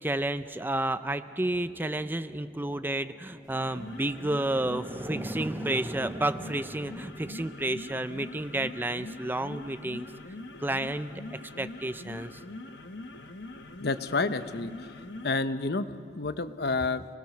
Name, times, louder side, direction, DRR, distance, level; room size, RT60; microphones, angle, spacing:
voice 1, 0.0-10.1 10.6-12.4, right 1 dB, 10° right, 12 dB, 0.5 m, -31 dB
sound 1, 3.5-15.4, left 2 dB, 90° left, 1.3 m, -43 dB
voice 2, 13.8-14.7 15.2-17.1, left 3 dB, 65° left, 11 dB, 0.9 m, -29 dB
29.5 x 20.0 x 6.6 m, 2.1 s
head